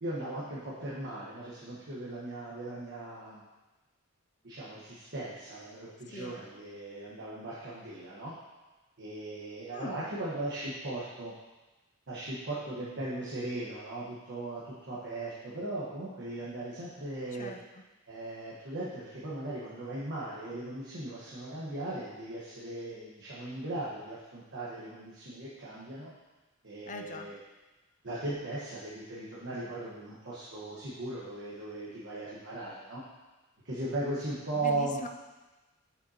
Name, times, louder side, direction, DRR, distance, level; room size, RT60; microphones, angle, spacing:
voice 1, 0.0-3.4 4.4-8.3 9.0-11.3 12.1-17.5 18.1-26.1 26.6-27.4 28.0-33.0 33.6-35.0, right 2 dB, 60° right, -8 dB, 1.4 m, -38 dB
voice 2, 9.7-10.0 17.4-17.8 26.9-27.3 34.6-35.1, left 3 dB, 35° left, 5 dB, 0.5 m, -42 dB
7.5 x 7.1 x 2.9 m, 1.1 s
head